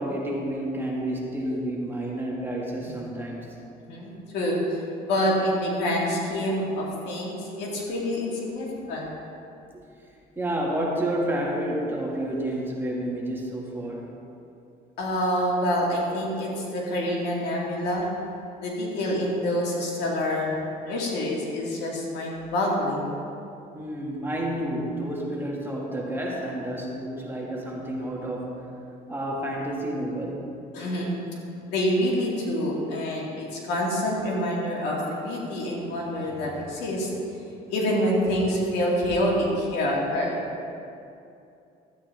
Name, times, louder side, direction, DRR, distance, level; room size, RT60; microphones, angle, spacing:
voice 1, 0.0-3.6 10.4-14.1 23.7-28.7 29.1-30.5, right 1 dB, 15° right, -3 dB, 1.8 m, -30 dB
voice 2, 3.8-4.8 5.0-9.1 15.0-18.1 18.6-20.5 20.8-23.2 30.7-31.2 31.7-37.1 37.7-40.3, equal, 85° left, -3 dB, 2.3 m, -27 dB
13.0 x 9.0 x 3.4 m, 2.6 s
cardioid pair, 110°, 17 cm